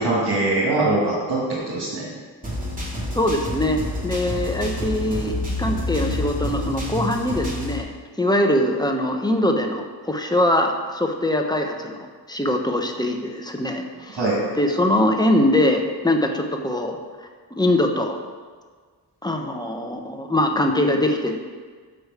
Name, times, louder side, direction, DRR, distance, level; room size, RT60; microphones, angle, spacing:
voice 1, 0.0-2.1 14.2-14.4, right 2 dB, 70° right, -7 dB, 2.0 m, -22 dB
sound 1, 2.4-7.8, left 1 dB, 20° right, 2.5 m, -28 dB
voice 2, 3.1-12.0 12.3-14.2 14.5-17.0 17.6-18.2 19.2-21.4, left 1 dB, 10° left, 3 dB, 1.1 m, -22 dB
6.2 x 5.0 x 6.6 m, 1.5 s
cardioid pair, 50°, 41 cm